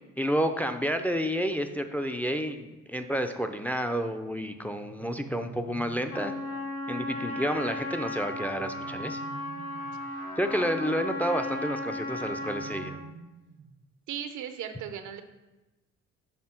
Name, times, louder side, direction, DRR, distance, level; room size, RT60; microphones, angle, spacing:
voice 1, 0.2-6.3 6.9-9.2 10.4-13.0, equal, 5° left, 7 dB, 0.4 m, -30 dB
sound 1, 4.6-6.4 8.3-10.2 12.0-13.9, right 5 dB, 40° right, 0.6 m, -47 dB
Trumpet, 6.1-13.0, left 2 dB, 80° left, 1.8 m, -35 dB
voice 2, 14.1-15.2, right 9 dB, 80° right, 9 dB, 0.7 m, -37 dB
6.6 x 3.6 x 5.8 m, 1.1 s
cardioid pair, 90°, 30 cm